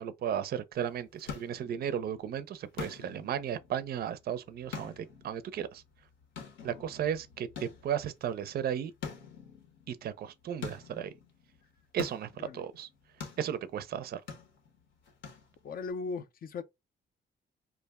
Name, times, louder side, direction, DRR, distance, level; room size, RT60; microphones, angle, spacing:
voice 1, 0.0-5.8 6.6-8.9 9.9-11.1 11.9-12.9 13.4-14.2, right 9 dB, 50° right, 0.4 m, -35 dB
sound 1, 0.7-15.9, left 6 dB, 75° left, 1.0 m, -47 dB
voice 2, 15.6-16.6, left 4 dB, 45° left, 0.5 m, -38 dB
2.3 x 2.1 x 3.4 m
cardioid pair, 90°, 20 cm